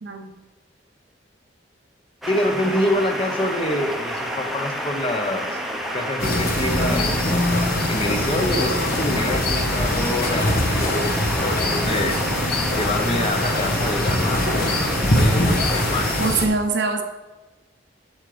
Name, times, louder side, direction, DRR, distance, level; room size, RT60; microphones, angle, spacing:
sound 1, 2.2-16.3, equal, ahead, 0.8 m, -29 dB
voice 1, 2.3-5.6 5.9-7.5 7.9-12.2 12.8-16.1, left 1 dB, 30° left, 5 dB, 0.9 m, -26 dB
sound 2, 6.2-16.5, left 1 dB, 60° left, 1.2 m, -22 dB
voice 2, 16.2-17.0, right 3 dB, 75° right, 5 dB, 0.9 m, -23 dB
8.0 x 7.4 x 3.3 m, 1.1 s
head